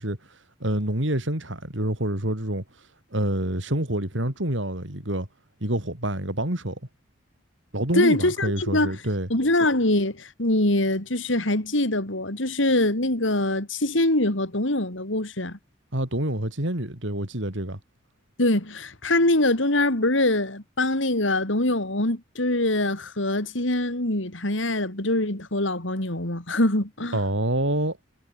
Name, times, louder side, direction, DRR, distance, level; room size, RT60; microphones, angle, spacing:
voice 1, 0.0-5.3 5.6-6.8 7.7-9.3 15.9-17.8 27.1-28.0, right 1 dB, 70° right, 4.4 m, -27 dB
voice 2, 7.9-9.0 9.3-15.6 18.4-27.2, left 1 dB, 75° left, 4.1 m, -23 dB
head